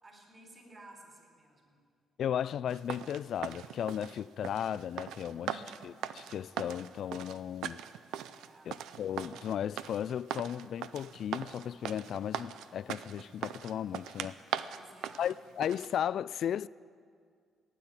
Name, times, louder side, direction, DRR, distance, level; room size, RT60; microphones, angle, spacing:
voice 1, 0.0-1.8 5.2-5.8 8.3-8.7 14.6-15.5, right 2 dB, 30° right, 4.3 m, -55 dB
voice 2, 2.2-5.5 5.8-7.8 8.7-14.4 15.2-16.7, left 9 dB, 65° left, 0.3 m, -35 dB
sound 1, 2.7-15.9, right 10 dB, 85° right, 0.5 m, -40 dB
16.0 x 9.9 x 9.0 m
cardioid pair, 90°, 0 cm